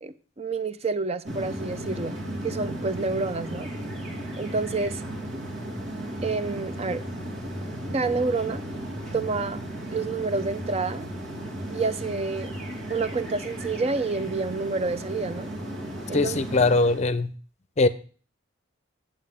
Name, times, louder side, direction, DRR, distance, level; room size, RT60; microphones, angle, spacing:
voice 1, 0.0-2.2 2.4-3.7 4.4-5.0 6.2-7.0 7.9-8.6 9.1-9.6 9.9-11.1 11.7-12.5 12.9-15.5 16.1-16.4, right 3 dB, 35° right, 12 dB, 0.5 m, -28 dB
sound 1, 1.2-17.0, right 1 dB, 80° right, 2.4 m, -35 dB
voice 2, 16.1-17.3 17.8-17.9, left 3 dB, 35° left, 13 dB, 0.6 m, -21 dB
8.8 x 7.5 x 3.6 m, 0.40 s
head